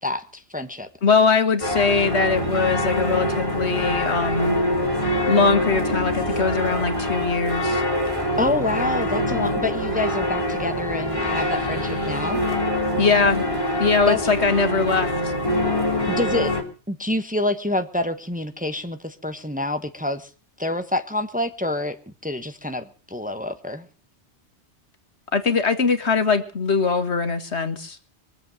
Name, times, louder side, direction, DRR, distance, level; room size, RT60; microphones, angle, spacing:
voice 1, 0.0-0.9 8.4-12.4 14.0-14.3 16.1-16.5 16.9-20.3 20.6-22.0 22.2-23.9, left 2 dB, 5° right, 8 dB, 1.1 m, -27 dB
voice 2, 1.0-4.6 5.3-7.8 13.0-13.4 13.8-15.1 25.3-28.0, left 5 dB, 70° left, 9 dB, 1.9 m, -21 dB
sound 1, 1.6-16.6, left 1 dB, 25° left, 3.2 m, -24 dB
23.0 x 8.0 x 7.7 m, 0.39 s
omnidirectional pair, 1.2 m